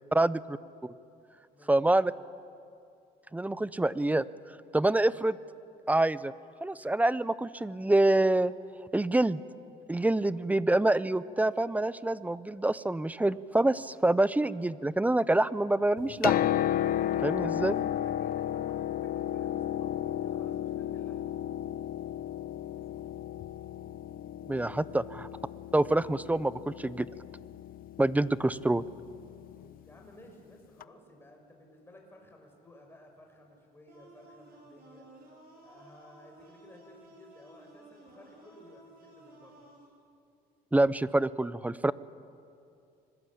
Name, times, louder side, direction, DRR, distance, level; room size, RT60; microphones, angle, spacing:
voice 1, 0.1-0.6 1.7-2.1 3.3-4.2 4.7-5.4 5.9-6.3 6.6-8.5 8.9-9.4 9.9-16.4 17.2-17.7 24.5-25.3 25.7-27.1 28.0-28.8 40.7-41.9, right 2 dB, 10° right, 17 dB, 0.6 m, -26 dB
Piano, 16.0-29.7 30.8-30.9, left 11 dB, 60° left, 0.7 m, -33 dB
voice 2, 17.6-21.3 24.9-25.2 29.8-35.1 35.6-39.7, left 1 dB, 15° left, 2 dB, 5.9 m, -56 dB
sound 1, 33.9-39.9, right 2 dB, 60° right, 7.5 m, -55 dB
26.0 x 21.0 x 8.7 m, 2.5 s
cardioid pair, 110°, 17 cm